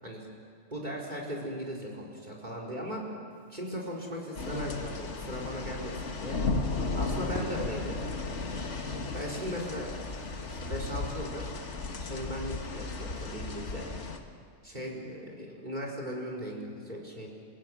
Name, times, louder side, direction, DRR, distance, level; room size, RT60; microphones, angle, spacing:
voice 1, 0.7-3.1 3.5-6.4 6.9-8.0 9.1-9.9 10.4-11.7 12.0-13.9 14.6-17.3, equal, 40° right, -1 dB, 4.7 m, -38 dB
Crackle, 3.3-11.1, right 2 dB, 55° right, 4.2 m, -49 dB
sound 1, 4.4-14.2, left 3 dB, 70° left, 1.9 m, -35 dB
29.0 x 16.5 x 9.2 m, 2.1 s
omnidirectional pair, 1.2 m